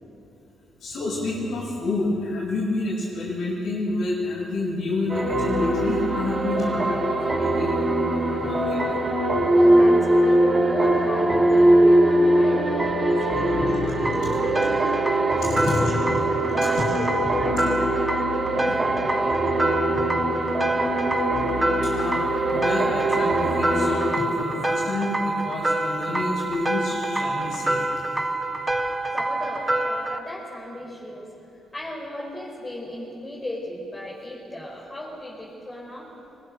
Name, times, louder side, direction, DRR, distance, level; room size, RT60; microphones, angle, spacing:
voice 1, 0.8-7.8 8.4-8.8 14.0-14.3 15.4-15.9 16.8-16.9 18.7-18.8 21.8-27.8, left 2 dB, 70° left, -7 dB, 6.3 m, -28 dB
sound 1, 5.1-24.1, right 1 dB, 30° right, 5.6 m, -22 dB
voice 2, 9.3-13.7 14.1-15.0 15.4-17.9 29.1-31.3 31.7-36.1, left 1 dB, 20° left, -4 dB, 5.4 m, -36 dB
sound 2, 14.0-30.2, right 2 dB, 15° right, 1.3 m, -27 dB
25.0 x 20.5 x 6.7 m, 3.0 s
cardioid pair, 90°, 0 cm